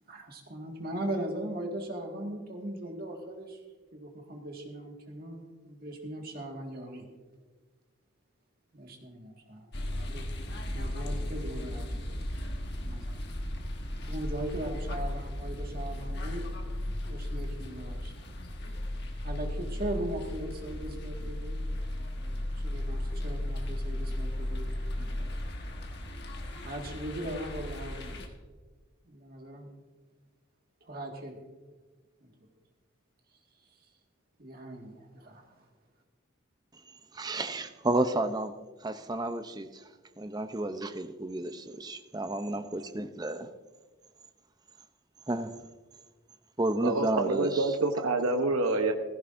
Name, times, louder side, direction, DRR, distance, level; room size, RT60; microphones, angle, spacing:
voice 1, 0.1-3.6 3.9-7.0 8.7-10.3 10.7-12.1 12.8-13.2 14.1-16.4 17.1-18.1 19.2-21.7 22.1-24.7 25.0-25.3 26.6-28.2 29.1-29.7 30.8-31.4 32.2-32.3 34.4-35.6, right 1 dB, 45° right, 1.8 m, -39 dB
sound 1, 9.7-28.3, left 1 dB, 50° left, 1.3 m, -35 dB
voice 2, 37.1-38.5 38.8-39.9 40.2-43.5 45.3-45.6 46.6-47.8, right 2 dB, 20° right, 0.5 m, -31 dB
voice 3, 46.8-48.9, right 3 dB, 90° right, 0.9 m, -27 dB
16.0 x 15.0 x 2.6 m
head